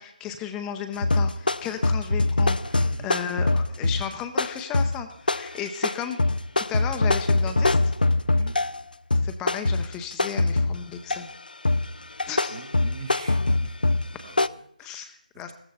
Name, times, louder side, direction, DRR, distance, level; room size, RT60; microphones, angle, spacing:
voice 1, 0.0-6.2 6.6-7.9 9.1-11.3 12.3-12.6 14.8-15.5, left 8 dB, 10° left, 6 dB, 0.6 m, -35 dB
sound 1, 1.0-8.8 9.1-11.3 11.6-14.5, left 2 dB, 85° left, 0.5 m, -23 dB
voice 2, 2.6-3.1 8.3-8.6 12.5-13.8 14.2-15.0, right 6 dB, 35° right, 12 dB, 0.9 m, -43 dB
15.5 x 14.0 x 4.1 m, 0.75 s
figure-of-eight pair, 155°, 5 cm